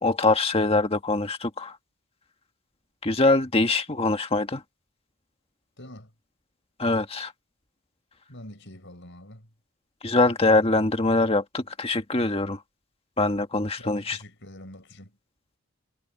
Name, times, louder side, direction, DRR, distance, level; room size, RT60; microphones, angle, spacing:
voice 1, 0.0-1.7 3.0-4.6 6.8-7.3 10.0-12.6 13.2-14.2, left 2 dB, 25° left, 1.7 m, -23 dB
voice 2, 5.8-6.1 8.3-9.5 13.8-15.2, left 1 dB, 55° left, 7.7 m, -44 dB
head